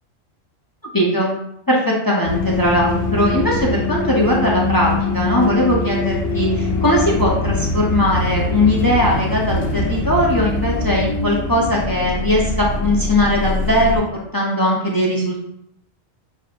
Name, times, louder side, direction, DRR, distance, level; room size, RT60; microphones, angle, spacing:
voice 1, 0.9-1.4 1.7-14.0 14.3-15.4, left 1 dB, 20° left, -4 dB, 0.6 m, -19 dB
sound 1, 2.2-14.0, left 2 dB, 80° left, 1.2 m, -23 dB
6.5 x 2.7 x 2.5 m, 0.75 s
omnidirectional pair, 1.3 m